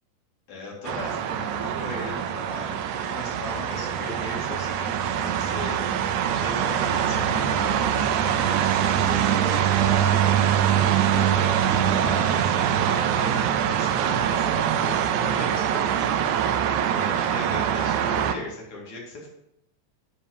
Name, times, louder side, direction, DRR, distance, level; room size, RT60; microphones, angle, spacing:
voice 1, 0.5-16.1 16.4-16.5 16.9-19.3, left 2 dB, 50° left, -2 dB, 3.5 m, -37 dB
sound 1, 0.8-18.3, right 9 dB, 85° right, 1.7 m, -23 dB
9.9 x 6.4 x 5.0 m, 0.81 s
omnidirectional pair, 4.2 m